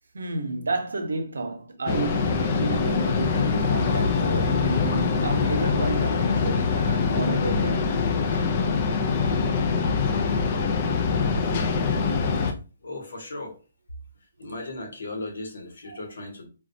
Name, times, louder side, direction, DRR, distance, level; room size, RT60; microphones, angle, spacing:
voice 1, 0.1-8.9 12.3-12.5 15.9-16.0, right 3 dB, 85° right, 0.8 m, -32 dB
sound 1, 1.9-12.5, left 5 dB, 40° left, 0.5 m, -24 dB
voice 2, 12.8-13.6 14.4-16.5, left 2 dB, 80° left, 1.2 m, -36 dB
3.9 x 2.3 x 2.6 m
hypercardioid pair, 150°, 0 cm